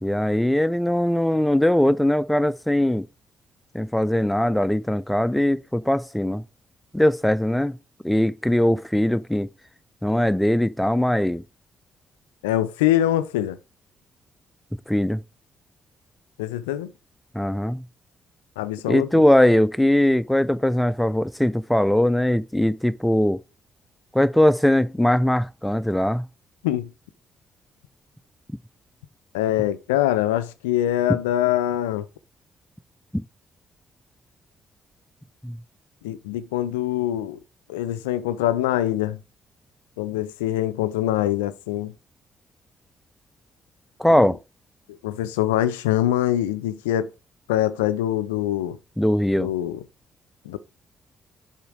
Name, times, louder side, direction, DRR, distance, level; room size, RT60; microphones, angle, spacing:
voice 1, 0.0-3.1 3.7-6.4 6.9-7.8 8.0-9.5 10.0-11.4 14.9-15.2 17.3-17.9 18.9-23.4 24.1-26.3 33.1-33.2 35.4-35.6 44.0-44.4 49.0-49.5, left 1 dB, 5° left, 0.5 m, -20 dB
voice 2, 12.4-13.6 16.4-16.9 18.6-19.2 26.6-26.9 29.3-32.1 36.0-37.4 37.7-39.2 40.0-41.9 44.1-44.3 45.0-47.1 47.5-48.8 49.4-49.8 50.5-50.6, left 13 dB, 85° left, 0.4 m, -24 dB
7.1 x 4.3 x 4.6 m
hypercardioid pair, 45°, 0 cm